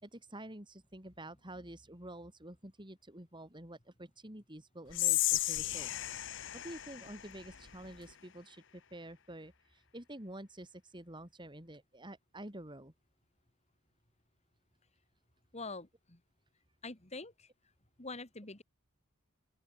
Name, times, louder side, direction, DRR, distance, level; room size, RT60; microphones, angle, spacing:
voice 1, 0.0-5.9 6.5-12.9, right 1 dB, 20° right, 4.6 m, -49 dB
Whispering, 4.9-8.1, left 16 dB, 60° left, 1.1 m, -34 dB
voice 2, 15.5-16.2 16.8-17.5 18.0-18.6, left 3 dB, 30° left, 2.8 m, -45 dB
open air
head